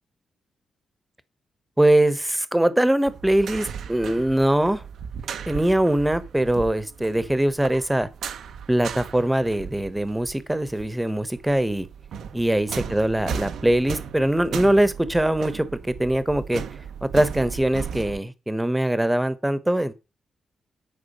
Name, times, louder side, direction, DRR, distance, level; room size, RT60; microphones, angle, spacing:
voice 1, 1.8-4.8 5.5-8.1 8.7-11.9 12.3-15.7 16.0-16.6 17.0-19.9, right 1 dB, 5° right, 1.0 m, -22 dB
sound 1, 3.1-10.9 11.2-18.2, right 7 dB, 85° right, 1.1 m, -36 dB
10.0 x 5.0 x 6.6 m
wide cardioid pair, 130°, 0 cm